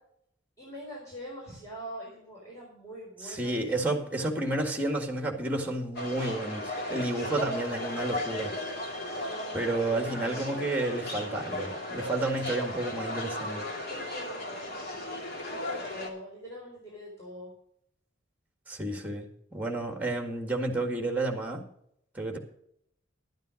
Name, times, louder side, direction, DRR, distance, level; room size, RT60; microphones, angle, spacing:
voice 1, 0.6-4.0 7.1-7.7 9.0-10.7 13.9-15.2 15.5-17.5 22.3-22.4, equal, 20° left, -5 dB, 4.2 m, -44 dB
voice 2, 3.2-8.5 9.5-13.7 18.7-21.6 22.2-22.4, right 2 dB, 10° right, 4 dB, 1.9 m, -31 dB
sound 1, 6.0-16.1, left 1 dB, 55° left, 2.7 m, -36 dB
12.0 x 9.3 x 5.2 m, 0.71 s
head